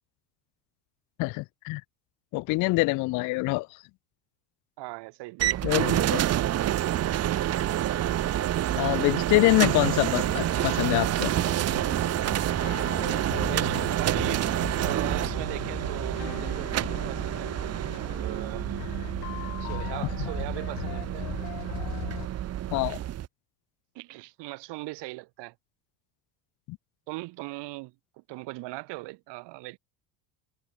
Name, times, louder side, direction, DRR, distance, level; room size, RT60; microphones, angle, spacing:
voice 1, 1.2-1.8 2.3-3.7 5.6-6.2 8.8-11.3 22.7-23.0 26.7-26.8, left 23 dB, 45° left, 0.4 m, -25 dB
voice 2, 4.8-5.6 13.4-14.4 14.8-17.5 17.9-18.6 19.6-21.3 23.9-25.5 27.1-29.8, right 22 dB, 60° right, 4.0 m, -39 dB
sound 1, 5.4-23.3, right 12 dB, 30° right, 1.1 m, -28 dB
sound 2, 9.7-22.3, left 40 dB or more, 75° left, 3.8 m, -39 dB
cardioid pair, 145°, 47 cm